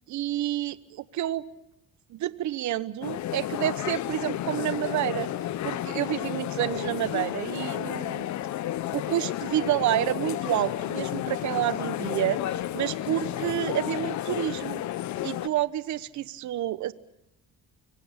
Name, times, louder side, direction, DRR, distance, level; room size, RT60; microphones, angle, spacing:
voice 1, 0.1-1.4 2.1-5.3 5.6-8.3 8.9-12.4 12.7-14.8 15.2-16.9, right 13 dB, 65° right, 15 dB, 1.1 m, -29 dB
sound 1, 3.0-15.5, left 13 dB, 60° left, 1.0 m, -32 dB
26.0 x 23.5 x 7.3 m, 0.86 s
cardioid pair, 115°, 32 cm